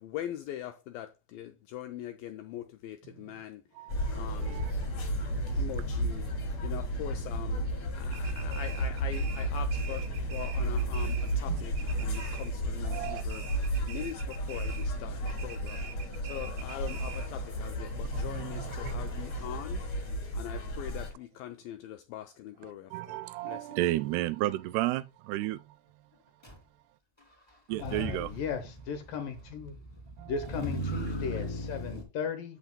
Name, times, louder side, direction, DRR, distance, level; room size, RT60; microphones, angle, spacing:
voice 1, 0.0-3.6 4.2-4.6 5.5-6.2 6.6-7.7 7.9-10.1 10.3-11.7 12.0-13.4 13.8-19.8 20.3-23.2 23.5-23.6, left 12 dB, 90° left, 2.1 m, -42 dB
voice 2, 3.8-4.1 4.4-4.7 5.5-5.6 11.5-11.6 12.0-12.4 12.8-13.2 18.1-19.6 22.6-25.8 27.7-28.3 30.2-30.3, right 16 dB, 85° right, 2.6 m, -34 dB
sound 1, 3.9-21.1, right 1 dB, 45° left, 3.1 m, -33 dB
sound 2, 8.1-11.5 11.7-12.7 12.9-15.0 15.3-17.4, right 8 dB, 70° right, 1.8 m, -46 dB
Motor vehicle (road), 26.4-26.5 27.7-32.0, equal, 10° left, 1.2 m, -38 dB
voice 3, 27.8-29.8 30.3-32.6, left 6 dB, 70° left, 2.3 m, -36 dB
12.0 x 7.1 x 2.2 m
omnidirectional pair, 4.7 m